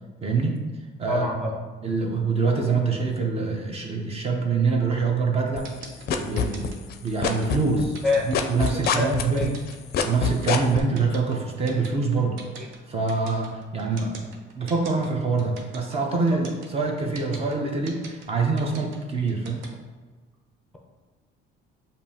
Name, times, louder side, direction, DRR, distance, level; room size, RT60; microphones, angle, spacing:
voice 1, 0.2-0.6 1.0-1.3 1.8-5.7 6.2-6.7 7.0-8.0 8.3-9.5 10.0-12.4 12.9-19.7, right 4 dB, 30° right, 1 dB, 0.8 m, -25 dB
voice 2, 1.1-1.6 8.0-8.3 8.7-9.5 12.6-12.7 16.3-16.4, left 2 dB, ahead, -2 dB, 0.6 m, -26 dB
sound 1, 5.6-6.9 7.2-10.8, left 7 dB, 55° left, 0.4 m, -24 dB
sound 2, 5.6-19.7, right 5 dB, 75° right, 0.8 m, -42 dB
6.8 x 2.7 x 2.8 m, 1.4 s
cardioid pair, 125°, 20 cm